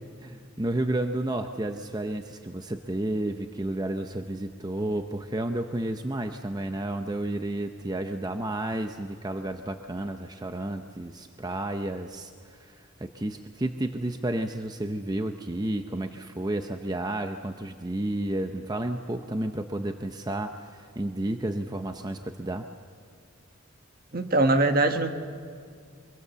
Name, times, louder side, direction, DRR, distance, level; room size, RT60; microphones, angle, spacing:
voice 1, 0.2-22.6, right 1 dB, 20° right, 6 dB, 0.7 m, -31 dB
voice 2, 24.1-25.1, right 2 dB, 50° right, 7 dB, 1.4 m, -22 dB
24.0 x 23.0 x 6.9 m, 2.2 s
head